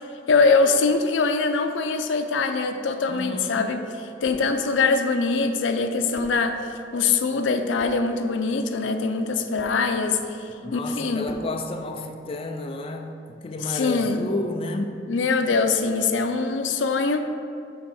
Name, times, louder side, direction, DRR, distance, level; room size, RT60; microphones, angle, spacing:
voice 1, 0.3-3.8 4.2-6.6 6.9-11.3 13.7-14.3 15.1-17.2, left 4 dB, 85° left, 7 dB, 0.5 m, -23 dB
voice 2, 3.1-3.9 9.3-9.4 10.6-14.9, left 2 dB, 30° left, 4 dB, 0.4 m, -31 dB
sound 1, 4.2-4.6 5.7-5.8 6.1-6.5 7.8-8.1 9.6-9.8 11.2-11.6, left 1 dB, 45° left, 0.8 m, -43 dB
7.8 x 3.5 x 5.5 m, 2.5 s
head